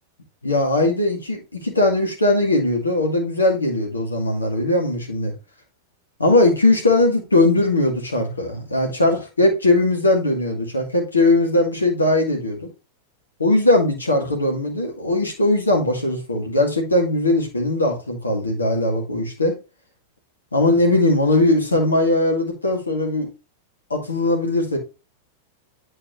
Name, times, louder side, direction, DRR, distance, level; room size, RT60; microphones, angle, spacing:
voice 1, 0.4-5.3 6.2-12.7 13.4-19.6 20.5-23.3 23.9-24.8, left 2 dB, 80° left, 2 dB, 2.1 m, -19 dB
8.9 x 4.6 x 3.1 m, 0.29 s
figure-of-eight pair, 95°, 0 cm